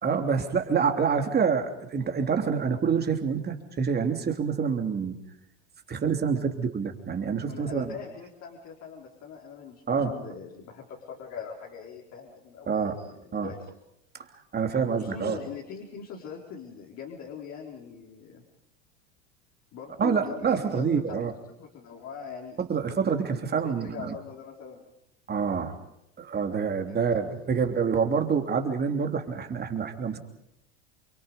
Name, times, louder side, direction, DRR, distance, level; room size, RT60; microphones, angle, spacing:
voice 1, 0.0-5.2 5.9-7.9 9.9-10.1 12.7-12.9 13.3-13.5 14.5-15.4 20.0-21.3 22.7-24.1 25.3-25.8 26.2-30.2, right 6 dB, 25° right, 5 dB, 3.3 m, -27 dB
voice 2, 7.4-13.7 14.8-18.4 19.7-21.3 21.6-22.6 23.6-24.8 26.9-27.4, left 6 dB, 45° left, -2 dB, 4.8 m, -42 dB
29.0 x 23.0 x 5.4 m, 0.79 s
hypercardioid pair, 95°, 36 cm